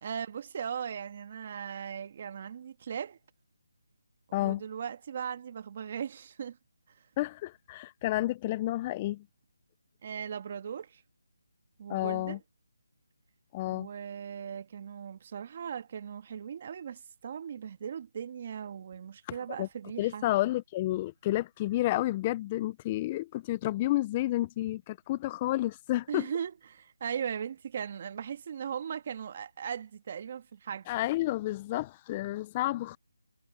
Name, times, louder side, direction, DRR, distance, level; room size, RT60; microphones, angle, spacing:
voice 1, 0.0-3.2 4.3-6.6 10.0-11.0 11.8-12.4 13.7-20.3 26.1-30.9, right 8 dB, 40° right, 1.7 m, -38 dB
voice 2, 7.2-9.2 11.9-12.4 13.5-13.9 19.3-19.7 20.0-26.3 30.9-33.0, left 16 dB, 20° left, 0.4 m, -30 dB
figure-of-eight pair, 160°, 0 cm